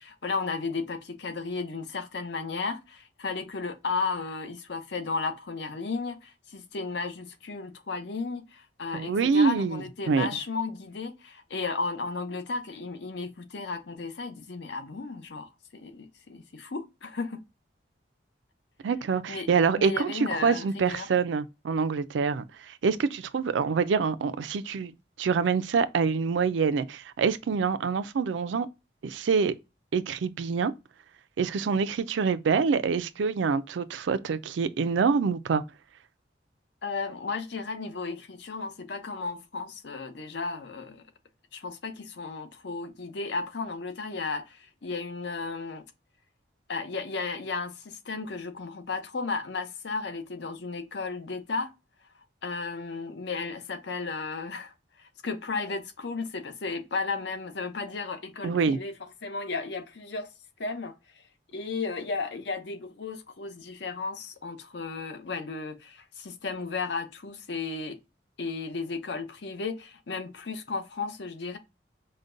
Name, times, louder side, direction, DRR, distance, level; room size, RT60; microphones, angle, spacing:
voice 1, 0.0-17.4 19.3-19.5 19.7-21.1 36.8-41.1 41.5-45.8 46.7-51.7 52.4-58.9 59.2-60.3 60.6-60.9 61.5-68.0 68.4-71.6, left 4 dB, 70° left, 0.7 m, -34 dB
voice 2, 8.9-10.3 18.8-28.7 29.0-29.5 29.9-30.7 31.4-35.6 58.4-58.8, right 5 dB, 80° right, 0.4 m, -26 dB
5.1 x 2.1 x 2.5 m
head